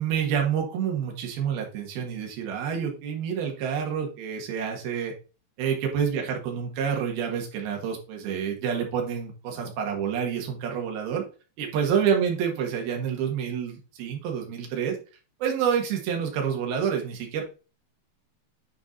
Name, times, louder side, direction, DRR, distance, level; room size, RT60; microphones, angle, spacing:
voice 1, 0.0-5.1 5.6-11.2 11.6-15.0 15.4-17.4, right 7 dB, 65° right, 1 dB, 3.2 m, -28 dB
9.0 x 4.7 x 2.7 m, 0.34 s
omnidirectional pair, 5.1 m